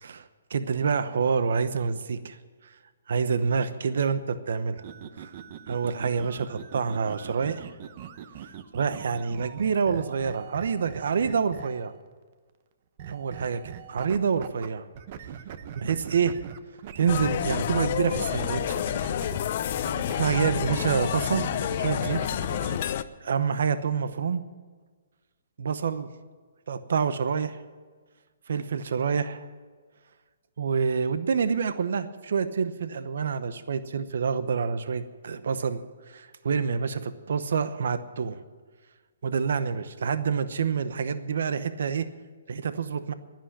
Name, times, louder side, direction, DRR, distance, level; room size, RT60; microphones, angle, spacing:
voice 1, 0.0-2.4 3.1-4.8 5.2-5.3 5.7-7.7 8.4-11.9 13.1-14.8 15.7-16.4 17.0-18.8 20.2-21.5 21.8-22.2 23.2-24.4 25.6-26.1 26.7-27.6 28.5-29.5 30.6-38.4 39.2-42.1 42.5-43.1, right 6 dB, 70° right, 12 dB, 0.9 m, -27 dB
sound 1, 4.8-12.0 13.0-14.7 14.9-19.4 19.7-22.8, right 9 dB, 40° right, 0.9 m, -42 dB
sound 2, 17.1-23.0, left 10 dB, 45° left, 0.6 m, -29 dB
11.0 x 10.5 x 10.0 m, 1.5 s
hypercardioid pair, 155°, 0 cm